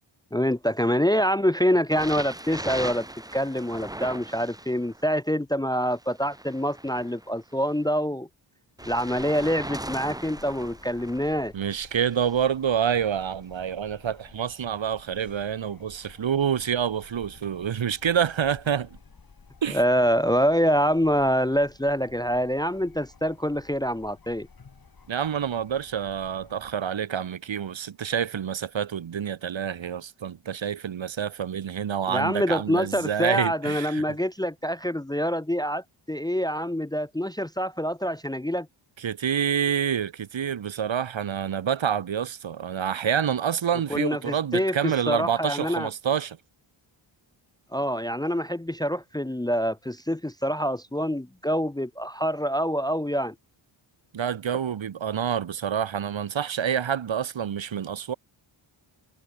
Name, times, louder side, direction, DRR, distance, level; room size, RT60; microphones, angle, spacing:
voice 1, 0.3-3.1 3.3-8.3 8.9-11.5 19.7-24.5 32.1-38.7 43.9-45.9 47.7-53.3, equal, 10° left, 0.7 m, -26 dB
sound 1, 1.9-5.0 5.9-7.8 8.8-11.4 12.1-12.4 13.3-13.4, right 1 dB, 5° right, 1.6 m, -38 dB
sound 2, 8.8-26.8, left 5 dB, 45° left, 5.1 m, -53 dB
voice 2, 11.5-19.0 19.6-19.8 25.1-34.0 39.0-46.4 54.1-58.1, right 8 dB, 65° right, 1.7 m, -27 dB
wide cardioid pair, 105°, 50 cm